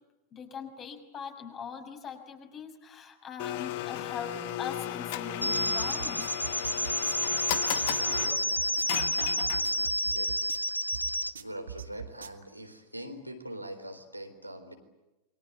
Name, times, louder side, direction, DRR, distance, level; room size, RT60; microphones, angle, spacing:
voice 1, 0.3-6.8, left 6 dB, 30° left, 5 dB, 6.1 m, -41 dB
Domestic sounds home sounds, 3.4-9.9, left 14 dB, 50° left, 1.7 m, -36 dB
sound 1, 5.4-11.3, left 1 dB, 85° left, 0.9 m, -30 dB
sound 2, 5.8-12.4, right 8 dB, 70° right, 2.1 m, -41 dB
voice 2, 10.0-10.7 11.4-14.7, right 1 dB, 85° right, 5 dB, 4.0 m, -42 dB
29.0 x 23.5 x 8.2 m, 1.0 s
figure-of-eight pair, 90°, 0 cm